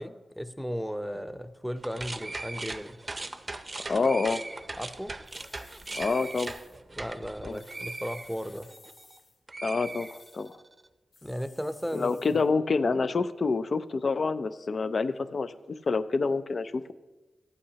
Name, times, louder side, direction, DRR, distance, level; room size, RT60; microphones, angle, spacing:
voice 1, 0.0-3.0 4.8-5.1 6.9-8.7 11.2-12.2, equal, ahead, 10 dB, 0.7 m, -35 dB
sound 1, 1.8-9.2 9.5-10.7, right 2 dB, 35° right, 0.6 m, -39 dB
voice 2, 3.9-4.4 5.9-6.6 7.4-7.6 9.6-10.6 11.9-16.9, left 4 dB, 60° left, 12 dB, 0.5 m, -27 dB
sound 2, 5.2-6.8 7.5-9.4 9.8-10.5 11.1-12.5, left 3 dB, 85° left, 1.8 m, -55 dB
14.0 x 8.4 x 2.9 m, 1.2 s
cardioid pair, 60°, 0 cm